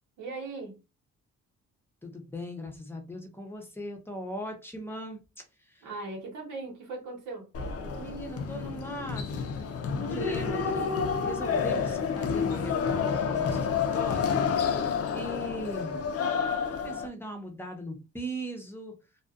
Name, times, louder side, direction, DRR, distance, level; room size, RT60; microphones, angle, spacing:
voice 1, 0.2-0.8 5.8-7.5, right 3 dB, 90° right, 1.1 m, -38 dB
voice 2, 2.0-5.2 5.6-5.9 8.0-9.3 9.9-16.0 16.8-19.0, equal, 5° left, 0.7 m, -39 dB
sound 1, 7.5-17.1, left 6 dB, 50° left, 0.5 m, -29 dB
2.5 x 2.3 x 2.4 m
cardioid pair, 90°, 30 cm